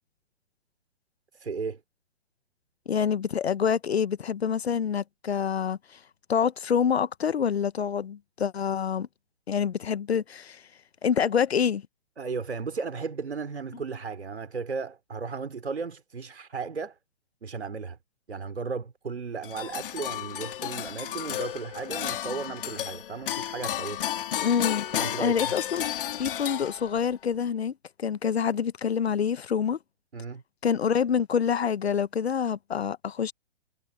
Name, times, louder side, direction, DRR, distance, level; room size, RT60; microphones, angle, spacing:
voice 1, 1.3-1.8 12.2-17.0 17.4-18.0 18.3-24.0 24.9-25.5 30.1-30.4, right 5 dB, 80° right, 4.4 m, -35 dB
voice 2, 2.9-5.8 6.3-9.1 9.5-10.6 11.0-11.8 24.4-24.9 25.2-25.8 26.2-27.7 28.0-29.8 30.6-33.3, left 7 dB, 75° left, 1.0 m, -26 dB
sound 1, 19.4-27.1, left 11 dB, 55° left, 2.2 m, -33 dB
hypercardioid pair, 130°, 32 cm